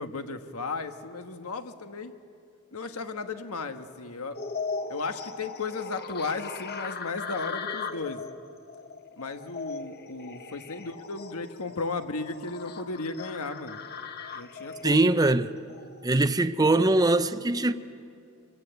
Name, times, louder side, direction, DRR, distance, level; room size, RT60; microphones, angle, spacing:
voice 1, 0.0-2.1 2.7-4.4 4.9-8.2 9.2-13.8 14.3-15.1, left 3 dB, 85° left, 1.4 m, -35 dB
sound 1, 4.3-16.1, left 5 dB, 45° left, 1.1 m, -39 dB
voice 2, 14.8-15.5 16.0-17.7, right 2 dB, 15° right, 0.6 m, -22 dB
26.5 x 23.0 x 8.1 m
head